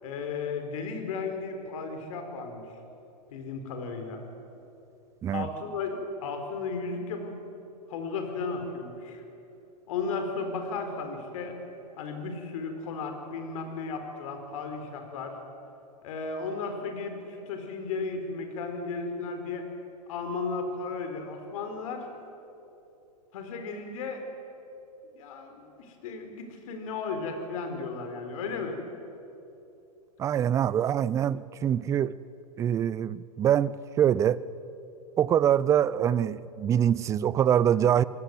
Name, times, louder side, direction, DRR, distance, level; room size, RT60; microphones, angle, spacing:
voice 1, 0.0-2.6 3.3-4.2 5.3-7.4 7.9-9.2 9.9-11.6 12.0-15.4 16.0-19.6 20.1-22.1 23.3-24.2 25.1-28.8, left 4 dB, 55° left, 5 dB, 4.3 m, -34 dB
voice 2, 30.2-32.2 32.6-34.4 35.2-38.0, right 9 dB, 15° right, 19 dB, 0.4 m, -24 dB
26.5 x 18.0 x 7.9 m, 2.9 s
hypercardioid pair, 120°, 21 cm